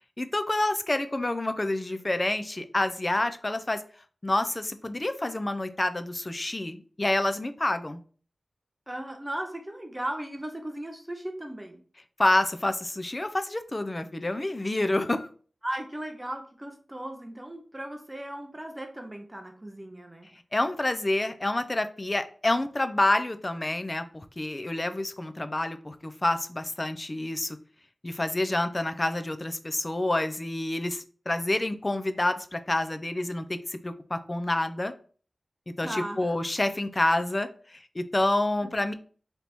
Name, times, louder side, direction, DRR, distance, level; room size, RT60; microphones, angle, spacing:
voice 1, 0.2-3.8 4.2-8.0 12.2-15.3 20.5-27.6 28.0-34.9 35.7-38.9, left 1 dB, 30° left, 10 dB, 0.4 m, -28 dB
voice 2, 8.9-11.8 15.6-20.3 35.8-36.3 38.6-38.7, right 1 dB, 15° right, 4 dB, 0.6 m, -37 dB
3.4 x 3.0 x 4.0 m, 0.42 s
wide cardioid pair, 85°, 0 cm